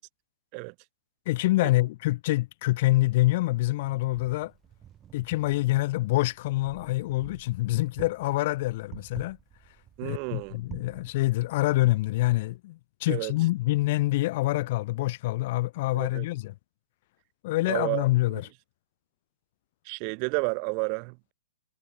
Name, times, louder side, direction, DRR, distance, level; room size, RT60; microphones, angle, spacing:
voice 1, 1.3-4.5 5.1-9.4 10.0-16.5 17.4-18.4, left 18 dB, 45° left, 0.4 m, -26 dB
Wind, 3.7-12.6, right 10 dB, 20° right, 6.5 m, -50 dB
voice 2, 10.0-10.6 13.1-13.3 15.9-16.3 17.7-18.0 18.3-18.4 19.9-21.3, right 40 dB or more, 35° right, 0.5 m, -31 dB
figure-of-eight pair, 115°, 0 cm